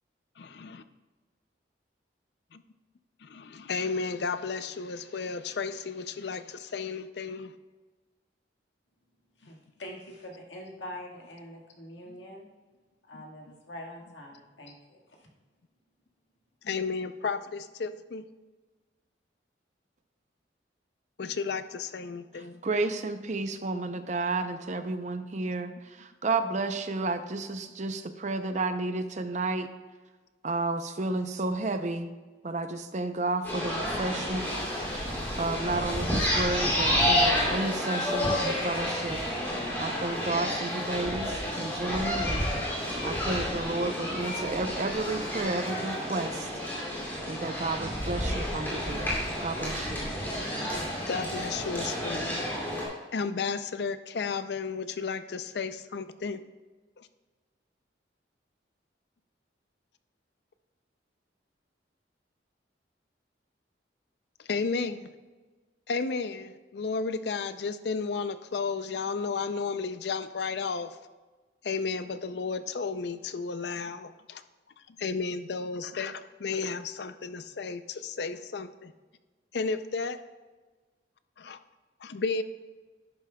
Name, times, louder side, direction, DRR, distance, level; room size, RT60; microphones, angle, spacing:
voice 1, 0.4-0.8 3.2-7.5 12.1-12.2 13.1-13.2 16.6-18.2 21.2-22.6 50.9-52.5 53.1-56.4 57.0-57.1 64.5-65.1 65.9-70.9 71.6-74.4 74.9-78.9 79.5-80.2 81.4-81.6 82.0-82.4, left 4 dB, 60° left, 11 dB, 0.5 m, -33 dB
voice 2, 9.4-12.5 13.0-15.3, left 1 dB, 90° left, 0 dB, 1.7 m, -44 dB
voice 3, 22.6-25.7 26.0-29.7 30.4-32.1 32.4-34.4 35.4-39.2 39.8-42.4 43.0-46.5 47.3-49.1 49.4-50.1, right 2 dB, 40° right, 9 dB, 0.6 m, -31 dB
sound 1, 33.4-52.8, equal, 10° left, 2.6 m, -30 dB
11.0 x 9.2 x 2.3 m, 1.3 s
head